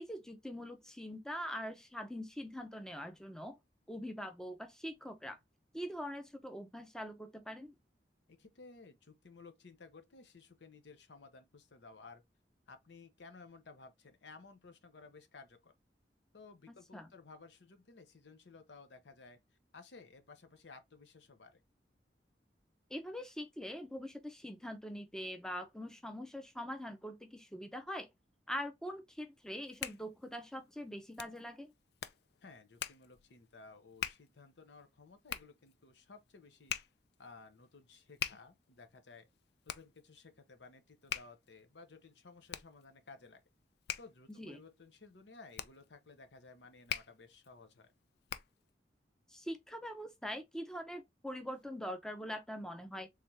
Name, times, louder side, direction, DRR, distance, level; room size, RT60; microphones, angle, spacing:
voice 1, 0.0-3.6 3.9-5.4 5.7-7.7 16.7-17.1 22.9-28.1 28.5-31.7 44.3-44.6 49.3-53.1, equal, 5° left, 0.5 m, -43 dB
voice 2, 8.3-12.2 12.7-15.7 16.3-19.4 19.7-21.6 32.4-36.8 37.2-39.3 39.7-43.4 44.0-47.9, left 4 dB, 85° left, 0.8 m, -56 dB
Hands, 29.4-48.7, left 10 dB, 65° left, 0.3 m, -46 dB
3.6 x 3.3 x 2.7 m
head